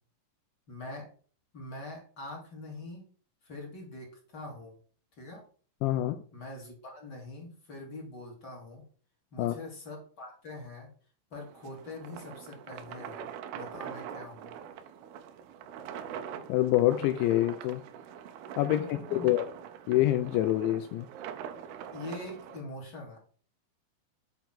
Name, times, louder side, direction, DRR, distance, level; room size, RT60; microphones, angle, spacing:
voice 1, 0.7-1.1 1.5-3.1 3.4-4.8 5.2-5.4 6.3-8.8 9.3-10.9 11.3-13.3 13.5-14.5 18.8-19.3 21.9-23.2, left 2 dB, 30° left, -1 dB, 2.6 m, -43 dB
voice 2, 5.8-6.2 9.4-9.6 16.5-17.8 18.6-19.5 19.9-21.1, left 14 dB, 80° left, 7 dB, 3.0 m, -26 dB
sound 1, 11.3-22.6, right 8 dB, 85° right, 2.3 m, -44 dB
9.0 x 4.6 x 5.9 m, 0.41 s
omnidirectional pair, 5.3 m